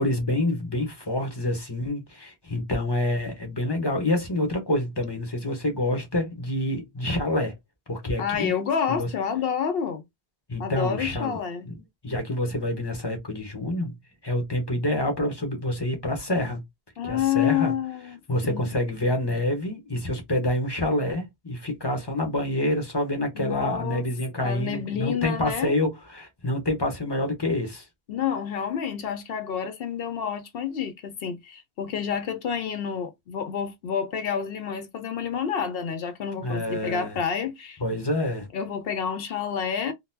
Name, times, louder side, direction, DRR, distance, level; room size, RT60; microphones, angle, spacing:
voice 1, 0.0-7.5 7.9-8.5 8.9-9.1 10.5-11.4 11.7-11.8 12.0-13.9 14.2-16.6 17.0-17.7 18.3-27.8 36.4-37.2 37.8-38.5, left 1 dB, 25° left, 1.1 m, -27 dB
voice 2, 8.2-10.0 10.6-11.7 17.0-18.7 23.3-24.1 24.4-25.7 28.1-37.8 38.5-39.9, left 8 dB, 70° left, 0.8 m, -29 dB
3.9 x 2.2 x 2.6 m
omnidirectional pair, 1.1 m